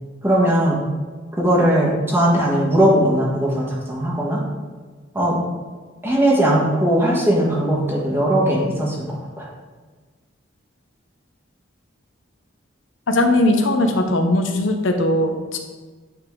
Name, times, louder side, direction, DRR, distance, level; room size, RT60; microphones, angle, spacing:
voice 1, 0.2-0.8 1.4-4.4 5.1-5.4 6.0-9.5, right 1 dB, 10° right, -4 dB, 1.4 m, -19 dB
voice 2, 13.1-15.6, left 1 dB, 75° left, 5 dB, 0.7 m, -19 dB
9.3 x 4.0 x 3.7 m, 1.4 s
head